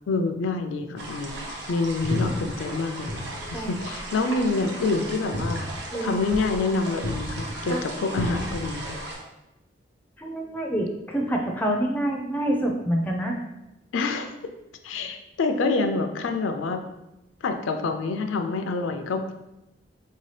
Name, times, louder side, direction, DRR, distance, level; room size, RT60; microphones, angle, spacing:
voice 1, 0.1-5.7 6.0-9.0 13.9-14.3 14.8-16.8 17.4-19.2, left 3 dB, 85° left, 7 dB, 0.4 m, -27 dB
sound 1, 1.0-9.2, equal, 65° right, 0.7 m, -33 dB
voice 2, 7.7-8.0 10.2-13.4, right 1 dB, 10° left, 0 dB, 0.4 m, -27 dB
4.3 x 2.8 x 3.2 m, 0.94 s
head